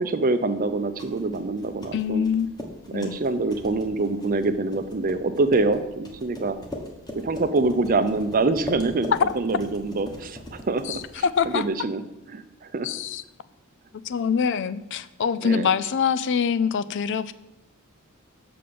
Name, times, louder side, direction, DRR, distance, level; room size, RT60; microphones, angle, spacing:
voice 1, 0.0-2.2 2.9-6.6 7.2-12.0 12.3-12.9 15.4-15.7, right 3 dB, 40° right, 10 dB, 0.6 m, -25 dB
sound 1, 0.7-11.7, left 1 dB, 20° left, 1.3 m, -41 dB
voice 2, 1.9-2.5 2.9-3.2 10.8-11.7 12.8-13.2 14.0-17.3, left 7 dB, 55° left, 15 dB, 0.4 m, -25 dB
6.8 x 5.1 x 6.9 m, 0.94 s
head